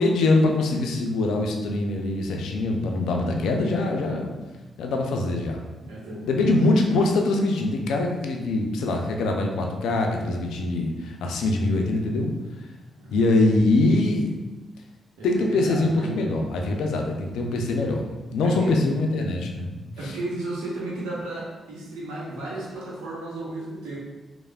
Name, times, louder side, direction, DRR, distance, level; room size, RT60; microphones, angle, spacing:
voice 1, 0.0-4.3 4.8-5.6 6.3-12.3 13.1-14.3 15.2-19.8, left 2 dB, 75° left, 2 dB, 0.3 m, -23 dB
voice 2, 5.8-6.7 13.0-13.2 15.2-16.2 17.3-17.6 18.4-18.7 20.0-24.0, right 2 dB, 85° right, -6 dB, 0.7 m, -34 dB
3.2 x 2.0 x 2.3 m, 1.2 s
hypercardioid pair, 40°, 0 cm